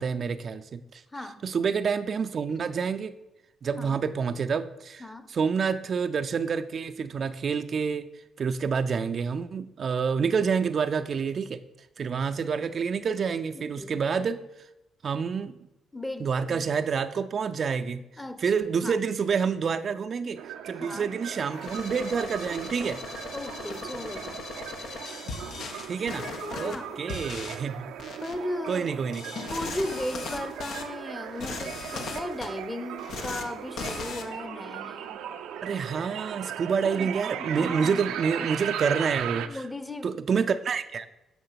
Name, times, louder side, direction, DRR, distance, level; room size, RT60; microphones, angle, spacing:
voice 1, 0.0-1.0 1.4-3.1 3.6-5.0 5.3-8.1 8.4-11.6 12.0-14.4 15.0-15.6 16.2-18.0 18.4-20.4 20.7-23.0 25.9-26.2 26.5-27.9 28.7-29.2 35.6-39.6 40.0-41.1, right 6 dB, 50° right, 9 dB, 0.5 m, -28 dB
voice 2, 1.1-1.4 2.5-2.7 3.8-4.0 5.0-5.3 13.5-14.0 15.9-16.7 18.2-18.5 18.8-19.0 20.7-21.1 23.3-24.5 26.6-26.9 28.2-28.9 29.4-35.2 36.8-37.1 37.4-38.0 39.4-40.2, left 1 dB, 10° left, 12 dB, 0.9 m, -36 dB
sound 1, 20.4-39.5, right 10 dB, 90° right, 0.6 m, -38 dB
sound 2, 21.5-26.8 27.1-27.6 28.0-28.3 29.1-30.8 31.3-32.5 33.0-33.4 33.8-34.2, left 4 dB, 70° left, 1.2 m, -38 dB
9.4 x 6.0 x 5.8 m, 0.94 s
cardioid pair, 90°, 0 cm